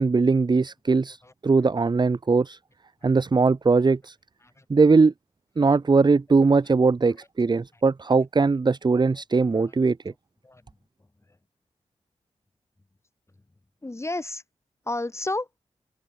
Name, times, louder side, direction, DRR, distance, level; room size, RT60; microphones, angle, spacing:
voice 1, 0.0-1.2 1.4-2.6 3.0-4.1 4.7-5.1 5.6-10.0, right 4 dB, 40° right, 1.1 m, -20 dB
voice 2, 13.8-14.4 14.9-15.5, left 2 dB, 25° left, 4.1 m, -32 dB
cardioid pair, 70°, 12 cm